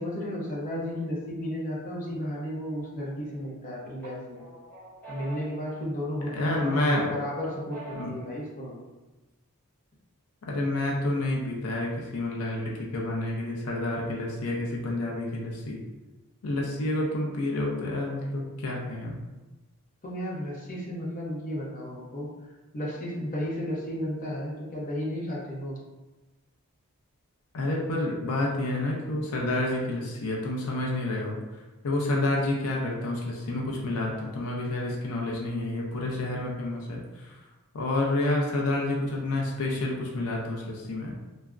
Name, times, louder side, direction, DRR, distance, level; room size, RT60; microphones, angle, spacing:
voice 1, 0.0-4.4 5.1-8.8 20.0-22.5 22.7-25.8, equal, 40° left, -4 dB, 0.6 m, -33 dB
sound 1, 3.0-3.6 4.0-6.3 6.7-8.3, right 1 dB, 10° left, 1.0 m, -46 dB
voice 2, 6.3-7.1 7.9-8.1 10.4-15.8 16.4-19.2 27.5-31.4 31.8-37.3 37.7-41.1, left 2 dB, 85° left, -2 dB, 0.5 m, -29 dB
3.4 x 2.0 x 2.4 m, 1.1 s
head